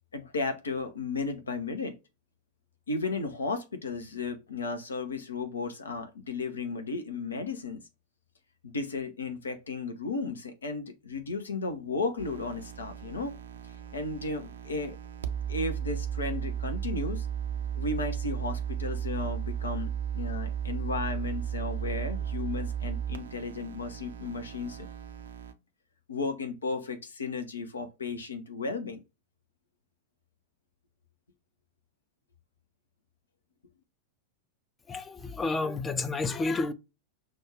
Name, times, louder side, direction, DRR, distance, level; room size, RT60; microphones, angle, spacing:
voice 1, 0.1-1.9 2.9-7.8 8.6-13.3 13.9-15.0 15.5-17.3 17.8-24.9 26.1-29.0, left 3 dB, 70° left, 0.7 m, -34 dB
sound 1, 12.2-25.5, right 9 dB, 65° right, 0.5 m, -35 dB
voice 2, 34.9-36.7, left 3 dB, 15° left, 0.5 m, -30 dB
6.1 x 2.4 x 3.1 m
figure-of-eight pair, 90°, 0 cm